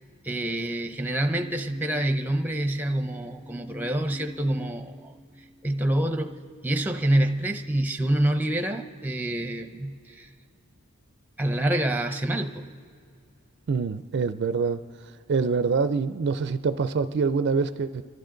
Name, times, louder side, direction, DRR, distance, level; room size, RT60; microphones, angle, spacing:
voice 1, 0.2-5.1 5.6-6.4 6.6-10.3 11.4-12.7, right 1 dB, 10° right, 6 dB, 0.6 m, -27 dB
sound 1, 1.3-8.7 9.3-9.8, left 2 dB, 40° left, 4.0 m, -49 dB
voice 2, 13.7-14.8 15.3-18.0, right 5 dB, 50° right, 11 dB, 0.4 m, -25 dB
28.5 x 12.0 x 3.8 m, 2.2 s
head